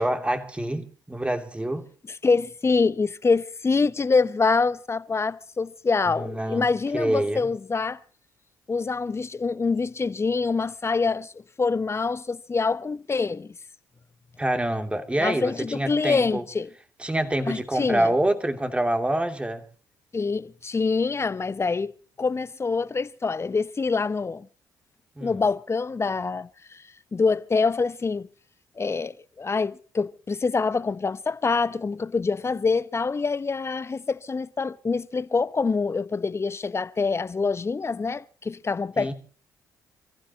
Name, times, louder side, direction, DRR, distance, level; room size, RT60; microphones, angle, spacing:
voice 1, 0.0-1.8 6.2-6.7 6.9-7.5 14.4-16.4 17.0-19.6 25.2-25.3 39.0-39.1, right 1 dB, 15° right, 2.9 m, -26 dB
voice 2, 2.1-8.0 8.7-11.3 11.6-13.6 15.2-16.7 17.5-18.1 20.1-21.9 22.2-24.5 25.2-26.8 27.1-28.3 28.8-39.1, left 4 dB, 30° left, 0.9 m, -25 dB
29.0 x 15.0 x 3.0 m
hypercardioid pair, 50°, 8 cm